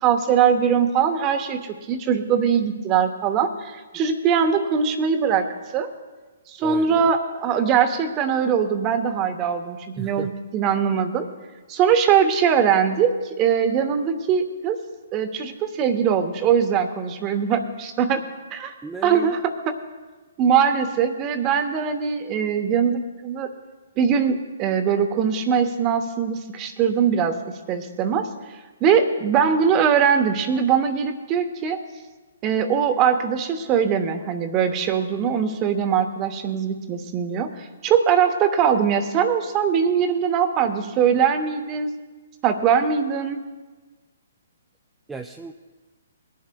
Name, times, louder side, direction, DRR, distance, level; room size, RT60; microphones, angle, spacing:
voice 1, 0.0-5.5 5.7-5.9 6.5-11.3 11.7-14.8 15.1-18.2 18.5-18.7 19.0-19.7 20.4-23.5 24.0-27.4 27.7-28.3 28.8-31.8 32.4-41.9 42.4-43.4, right 7 dB, 30° right, 8 dB, 1.0 m, -21 dB
voice 2, 6.6-7.1 10.0-10.3 18.8-19.3 45.1-45.5, right 3 dB, 10° right, 3 dB, 0.4 m, -35 dB
23.0 x 10.5 x 2.3 m, 1.3 s
hypercardioid pair, 135°, 0 cm